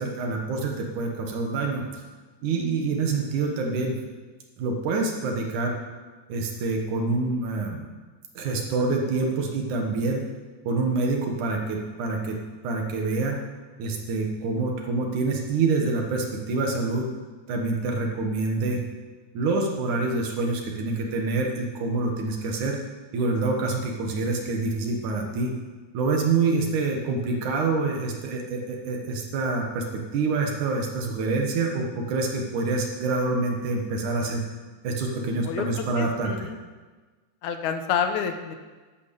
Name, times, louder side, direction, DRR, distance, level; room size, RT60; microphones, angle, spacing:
voice 1, 0.0-1.9 2.4-4.0 4.6-5.8 6.3-7.9 8.4-10.3 10.6-12.4 12.6-13.4 13.8-17.1 17.5-18.8 19.3-22.8 23.1-25.5 25.9-34.4 34.8-36.5, right 3 dB, 85° right, 1 dB, 3.1 m, -26 dB
voice 2, 35.3-35.7 36.0-36.6 37.4-38.6, left 7 dB, 85° left, 7 dB, 2.3 m, -28 dB
11.0 x 8.8 x 6.9 m, 1.4 s
omnidirectional pair, 3.4 m